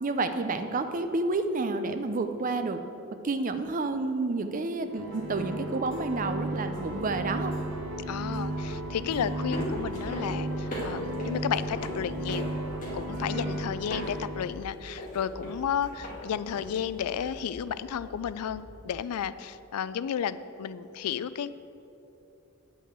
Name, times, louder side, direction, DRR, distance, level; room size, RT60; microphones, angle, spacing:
voice 1, 0.0-2.8 3.2-7.5, right 3 dB, 35° right, 9 dB, 0.5 m, -29 dB
sound 1, 4.9-13.6, right 1 dB, 55° right, 1.9 m, -42 dB
sound 2, 4.9-14.6, right 1 dB, 80° right, 0.9 m, -35 dB
sound 3, 8.0-18.9, equal, 35° left, 2.1 m, -40 dB
voice 2, 8.1-12.5 12.9-21.5, left 8 dB, 85° left, 15 dB, 0.4 m, -33 dB
8.9 x 5.5 x 7.4 m, 2.9 s
head